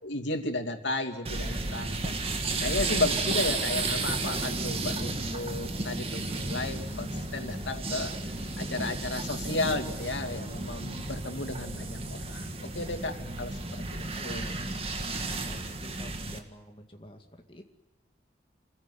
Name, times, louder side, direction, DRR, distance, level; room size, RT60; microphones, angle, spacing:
voice 1, 0.0-2.1 2.6-8.1 8.6-14.4, left 2 dB, 85° left, 5 dB, 2.8 m, -34 dB
sound 1, 1.3-16.4, right 3 dB, 30° right, 2.0 m, -33 dB
voice 2, 14.0-17.6, left 1 dB, 30° left, 3 dB, 2.2 m, -48 dB
27.0 x 16.0 x 9.8 m, 1.1 s
head